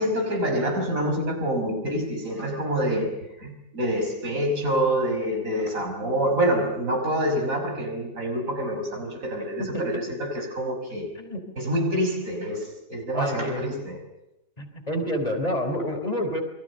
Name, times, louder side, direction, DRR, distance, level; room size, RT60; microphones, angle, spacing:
voice 1, 0.0-11.1 11.6-14.0, equal, 75° right, 6.1 m, -26 dB
voice 2, 13.1-13.7 14.6-16.4, equal, 30° left, 4.0 m, -28 dB
28.0 x 22.5 x 6.7 m
omnidirectional pair, 1.4 m